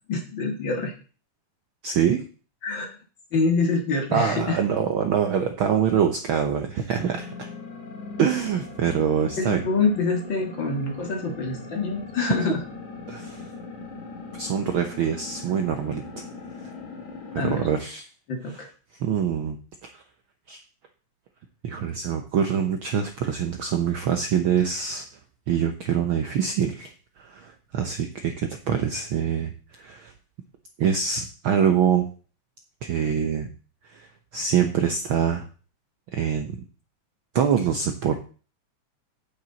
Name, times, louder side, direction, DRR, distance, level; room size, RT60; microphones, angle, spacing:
voice 1, 0.1-0.9 2.6-3.0 3.3-4.6 9.4-12.6 17.4-17.7 18.3-18.7, left 3 dB, 45° left, 3 dB, 2.1 m, -26 dB
voice 2, 1.8-2.2 4.1-7.5 8.2-9.6 13.1-13.4 14.3-16.2 17.4-18.0 18.5-18.6 19.0-19.6 19.9-20.0 20.5-20.6 21.6-25.0 25.5-30.1 30.8-32.1 32.8-33.5 33.8-34.1 34.3-35.4 36.1-36.6 37.3-38.2, right 8 dB, 90° right, 6 dB, 1.1 m, -25 dB
sound 1, 6.9-17.8, left 3 dB, 80° left, 4.2 m, -40 dB
9.0 x 8.6 x 4.0 m, 0.38 s
omnidirectional pair, 3.4 m